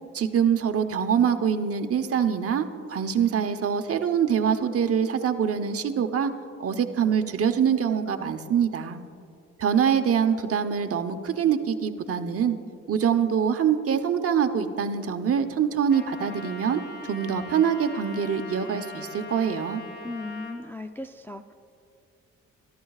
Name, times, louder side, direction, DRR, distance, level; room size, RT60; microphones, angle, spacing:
voice 1, 0.1-6.3 6.6-9.0 9.6-12.6 12.9-19.8, right 7 dB, 50° right, 7 dB, 1.0 m, -24 dB
Trumpet, 15.9-20.6, left 2 dB, 35° left, 2.3 m, -42 dB
voice 2, 20.0-21.5, left 2 dB, 5° left, 6 dB, 0.4 m, -37 dB
29.5 x 13.0 x 2.4 m, 2.3 s
cardioid pair, 90°, 30 cm